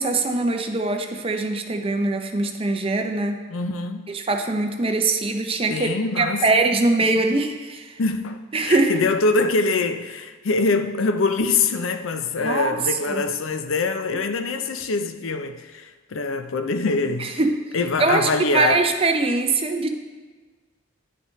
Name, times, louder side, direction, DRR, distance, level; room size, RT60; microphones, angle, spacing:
voice 1, 0.0-3.4 4.1-5.9 6.2-8.0 8.5-9.1 12.4-12.8 13.1-13.2 17.2-17.6 18.0-19.9, right 3 dB, 30° right, 0.6 m, -22 dB
voice 2, 3.5-4.2 5.7-6.5 7.1-7.2 8.0-17.4 17.7-18.8, left 3 dB, 85° left, 0.6 m, -24 dB
10.5 x 6.5 x 3.2 m
head